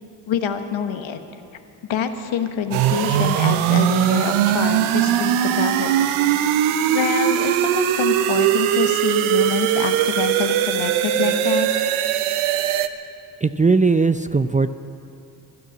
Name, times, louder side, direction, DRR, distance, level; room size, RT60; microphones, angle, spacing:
voice 1, 0.3-1.2 1.9-6.2 6.9-11.7, left 8 dB, 70° left, 7 dB, 1.3 m, -26 dB
sound 1, 2.7-12.9, right 11 dB, 80° right, 0.7 m, -20 dB
voice 2, 13.4-14.7, right 4 dB, 15° right, 11 dB, 0.5 m, -18 dB
16.0 x 12.0 x 7.3 m, 2.6 s
hypercardioid pair, 45°, 49 cm